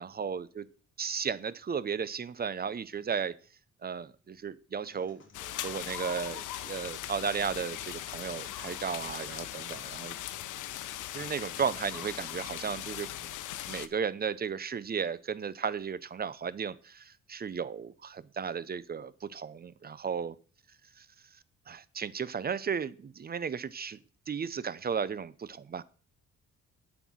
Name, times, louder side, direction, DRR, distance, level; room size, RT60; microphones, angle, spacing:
voice 1, 0.0-0.7 1.0-3.3 3.8-10.2 11.1-13.3 13.7-20.3 21.0-21.1 21.7-24.0 24.3-25.8, right 6 dB, 30° right, 0.6 m, -35 dB
sound 1, 4.8-12.8, left 3 dB, 40° left, 2.3 m, -58 dB
sound 2, 5.3-13.9, left 13 dB, 80° left, 0.8 m, -39 dB
9.1 x 6.1 x 6.2 m
cardioid pair, 90°, 30 cm